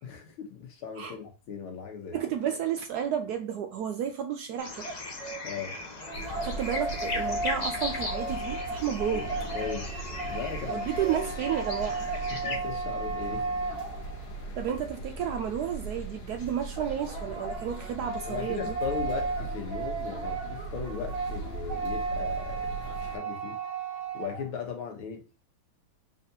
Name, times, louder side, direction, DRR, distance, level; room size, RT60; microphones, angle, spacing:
voice 1, 0.0-2.2 5.4-5.8 9.0-9.3 9.5-9.9 10.3-10.9 12.3-13.6 18.3-23.6 24.1-25.2, left 6 dB, 85° left, 2.0 m, -37 dB
voice 2, 2.1-4.9 6.4-9.3 10.7-12.1 14.6-18.8, right 9 dB, 80° right, 0.8 m, -32 dB
sound 1, 4.6-12.6, left 1 dB, 45° left, 0.5 m, -37 dB
sound 2, 5.7-14.4 16.8-24.5, right 3 dB, 30° right, 1.7 m, -35 dB
sound 3, 6.1-23.2, right 2 dB, 65° left, 1.9 m, -39 dB
4.7 x 4.2 x 2.7 m
omnidirectional pair, 2.2 m